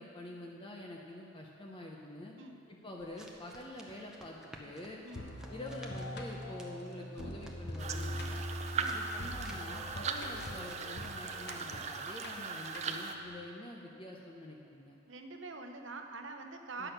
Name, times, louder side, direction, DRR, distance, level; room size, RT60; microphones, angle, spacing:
voice 1, 0.0-2.3 2.8-5.0 5.5-8.4 8.8-15.0 16.8-16.9, left 1 dB, 25° left, -1 dB, 0.7 m, -47 dB
sound 1, 3.0-11.3, right 1 dB, 5° right, 0.8 m, -55 dB
sound 2, 5.2-13.3, left 1 dB, 60° left, 1.0 m, -43 dB
sound 3, 7.8-13.1, right 5 dB, 35° right, 0.5 m, -39 dB
voice 2, 15.1-16.9, right 3 dB, 70° right, 5 dB, 0.8 m, -45 dB
10.0 x 6.2 x 6.5 m, 2.6 s
head